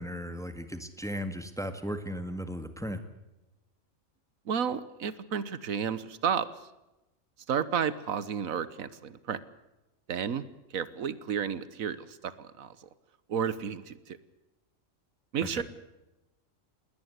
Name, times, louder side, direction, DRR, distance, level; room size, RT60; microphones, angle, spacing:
voice 1, 0.0-3.0 15.6-15.7, equal, ahead, 9 dB, 1.7 m, -36 dB
voice 2, 4.5-6.5 7.5-9.4 10.1-10.4 10.7-12.9 13.3-14.2 15.3-15.6, right 7 dB, 80° right, 16 dB, 1.5 m, -32 dB
20.5 x 19.0 x 8.2 m, 0.99 s
omnidirectional pair, 1.4 m